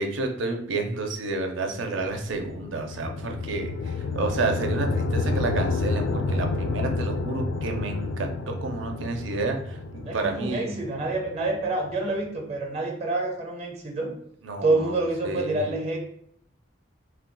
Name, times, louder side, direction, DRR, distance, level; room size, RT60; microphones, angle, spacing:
voice 1, 0.0-10.7 14.4-15.7, right 3 dB, 80° right, 4 dB, 0.5 m, -30 dB
sound 1, 2.0-12.1, left 3 dB, 65° left, 0.3 m, -30 dB
voice 2, 10.0-14.1 14.6-16.0, right 2 dB, 35° right, 2 dB, 0.6 m, -27 dB
2.3 x 2.2 x 3.8 m, 0.68 s
head